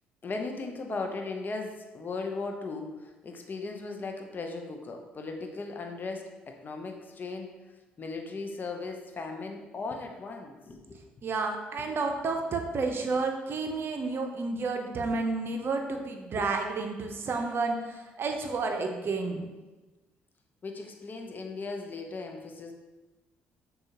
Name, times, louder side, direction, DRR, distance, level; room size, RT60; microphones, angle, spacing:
voice 1, 0.2-7.5 8.0-11.0 16.4-16.5 20.6-22.7, left 3 dB, 35° left, 3 dB, 0.6 m, -37 dB
voice 2, 11.2-19.5, right 3 dB, 45° right, 4 dB, 0.6 m, -31 dB
6.2 x 2.4 x 2.8 m, 1.1 s
hypercardioid pair, 50°, 5 cm